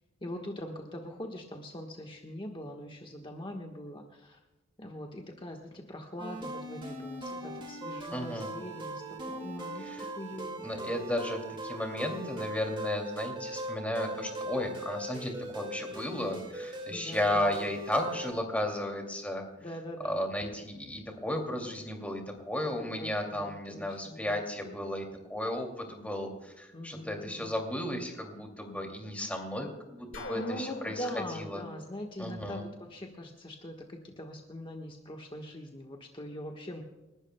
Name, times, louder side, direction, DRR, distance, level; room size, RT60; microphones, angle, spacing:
voice 1, 0.2-4.4 4.8-9.9 10.2-10.7 16.9-17.5 19.6-20.2 22.7-24.4 26.7-27.5 30.3-36.8, left 1 dB, 25° left, 1 dB, 1.3 m, -42 dB
sound 1, 6.2-18.3, right 1 dB, 25° right, 2.1 m, -40 dB
voice 2, 8.1-8.5 9.8-10.0 10.6-19.4 20.0-30.9 31.3-31.6 32.2-32.6, left 1 dB, 10° left, 2 dB, 2.4 m, -34 dB
sound 2, 30.1-32.9, left 2 dB, 90° left, 1.8 m, -45 dB
29.0 x 12.5 x 2.2 m, 1.1 s
head